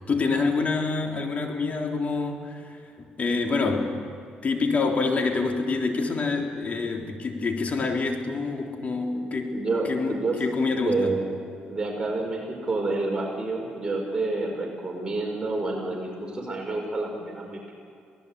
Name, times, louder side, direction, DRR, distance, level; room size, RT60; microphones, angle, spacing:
voice 1, 0.1-3.9 4.4-11.2, left 4 dB, 45° left, 2 dB, 3.7 m, -27 dB
voice 2, 9.5-10.4 10.8-11.3 11.7-17.7, right 3 dB, 25° right, 0 dB, 5.7 m, -29 dB
26.5 x 18.5 x 8.3 m, 2.4 s
cardioid pair, 75°, 3 cm